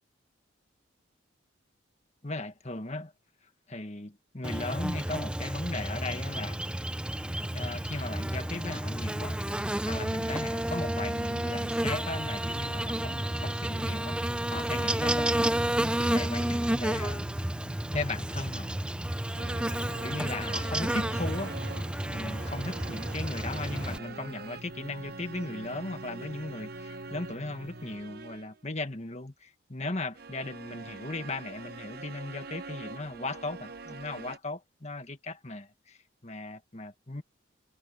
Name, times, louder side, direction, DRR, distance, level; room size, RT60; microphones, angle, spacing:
voice 1, 2.2-3.1 3.7-6.8 7.5-9.4 9.9-17.3 17.9-18.8 20.0-21.6 22.1-37.2, left 2 dB, 35° left, 1.6 m, -37 dB
Buzz, 4.4-24.0, right 1 dB, 5° right, 0.4 m, -31 dB
sound 1, 14.2-28.0, right 1 dB, 85° right, 6.3 m, -49 dB
sound 2, 19.4-28.6 30.1-34.4, right 3 dB, 50° right, 0.8 m, -44 dB
head